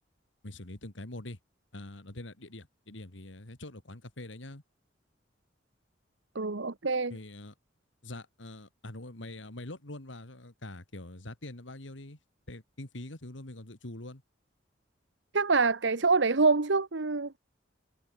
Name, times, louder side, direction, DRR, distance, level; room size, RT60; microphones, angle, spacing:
voice 1, 0.4-1.4 1.7-4.6 7.1-7.5 8.0-12.2 12.5-14.2, left 1 dB, 80° left, 2.7 m, -44 dB
voice 2, 6.3-7.1 15.3-17.4, right 4 dB, 70° right, 1.1 m, -26 dB
head